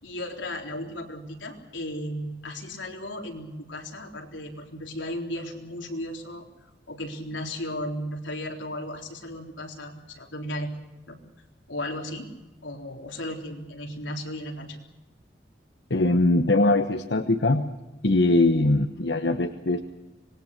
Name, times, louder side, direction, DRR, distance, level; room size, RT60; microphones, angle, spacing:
voice 1, 0.0-6.5 6.9-10.7 11.1-11.2 11.7-12.3 12.6-14.8, left 1 dB, 90° left, 2 dB, 3.8 m, -35 dB
voice 2, 15.9-17.7 18.0-19.8, left 2 dB, 70° left, 7 dB, 1.2 m, -21 dB
25.5 x 21.0 x 6.6 m, 1.1 s
head